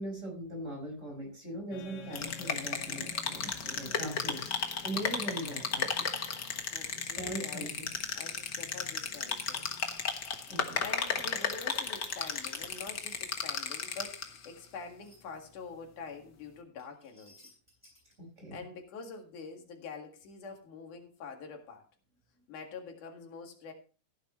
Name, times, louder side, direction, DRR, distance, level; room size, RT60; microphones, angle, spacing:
voice 1, 0.0-4.5 4.8-6.2 7.1-7.7 10.5-10.8 18.2-18.6, right 1 dB, 20° right, 1 dB, 5.5 m, -40 dB
sound 1, 1.7-10.6, left 7 dB, 65° left, 2.4 m, -51 dB
sound 2, 2.1-14.5, left 6 dB, 45° left, 1.5 m, -35 dB
voice 2, 6.7-7.7 8.1-9.7 10.8-17.5 18.5-21.9 22.5-23.7, left 4 dB, 85° left, 3 dB, 3.5 m, -46 dB
sound 3, 15.0-15.2 16.8-18.1, left 1 dB, 5° left, 6.4 m, -59 dB
15.5 x 10.0 x 3.1 m, 0.35 s
omnidirectional pair, 3.5 m